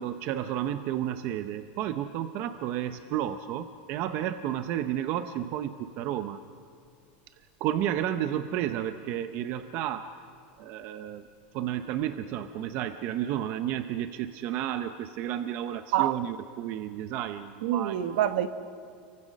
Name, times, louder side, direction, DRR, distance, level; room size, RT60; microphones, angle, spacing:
voice 1, 0.0-6.4 7.6-10.1 10.6-11.2 11.5-18.0, right 11 dB, 40° right, 0.8 m, -32 dB
voice 2, 17.6-18.5, right 12 dB, 65° right, 1.3 m, -26 dB
29.0 x 24.0 x 6.4 m
supercardioid pair, 170°, 6 cm